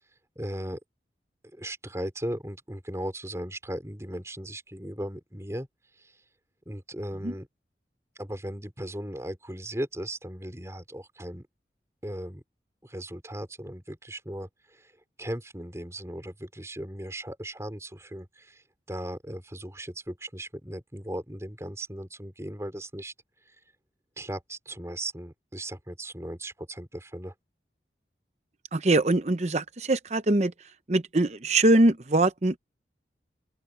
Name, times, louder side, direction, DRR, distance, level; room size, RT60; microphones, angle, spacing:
voice 1, 0.4-0.8 1.5-5.7 6.0-6.1 6.7-7.5 8.2-11.4 12.0-12.4 12.8-14.9 15.2-18.6 18.9-23.1 23.5-23.6 24.2-27.3, right 1 dB, 15° right, 3.9 m, -37 dB
voice 2, 28.7-30.5 30.9-32.6, right 2 dB, 40° right, 0.8 m, -23 dB
open air
head